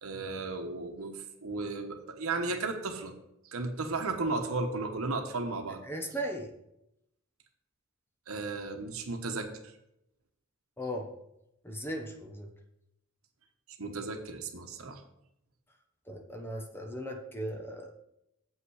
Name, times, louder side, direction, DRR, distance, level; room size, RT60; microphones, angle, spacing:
voice 1, 0.0-3.1 3.4-5.8 8.3-9.5 13.8-15.0, right 3 dB, 75° right, 5 dB, 1.1 m, -34 dB
voice 2, 5.9-6.5 10.8-11.1 11.6-12.5 16.1-17.9, equal, 10° left, 3 dB, 1.0 m, -37 dB
7.6 x 5.6 x 6.3 m, 0.81 s
head